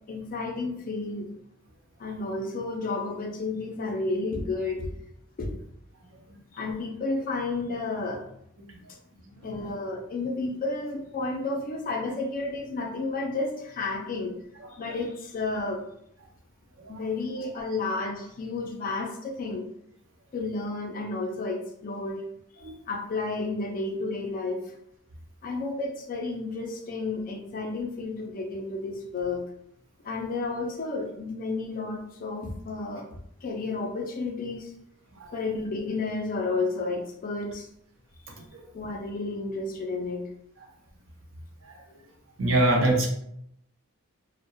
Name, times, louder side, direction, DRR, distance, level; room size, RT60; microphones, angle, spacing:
voice 1, 0.1-1.3 2.0-4.9 5.4-5.5 6.5-8.2 8.9-9.0 9.4-14.3 14.7-15.8 16.9-19.7 20.3-22.2 22.9-24.7 25.4-29.4 30.0-34.7 35.3-37.7 38.7-40.3, left 3 dB, 40° left, 2 dB, 0.4 m, -31 dB
voice 2, 42.4-43.1, right 1 dB, 65° right, 1 dB, 0.6 m, -25 dB
2.7 x 2.1 x 2.2 m, 0.73 s
head